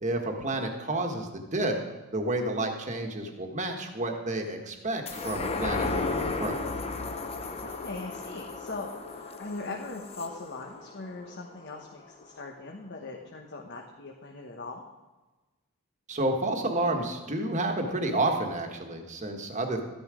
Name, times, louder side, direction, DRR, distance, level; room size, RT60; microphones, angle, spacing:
voice 1, 0.0-6.6 16.1-19.8, right 2 dB, 35° right, 4 dB, 1.6 m, -30 dB
sound 1, 5.1-11.8 12.3-12.4, left 3 dB, 25° left, 0.8 m, -34 dB
voice 2, 7.6-14.8, left 3 dB, 50° left, 1 dB, 1.2 m, -40 dB
13.5 x 10.5 x 5.0 m, 1.2 s
head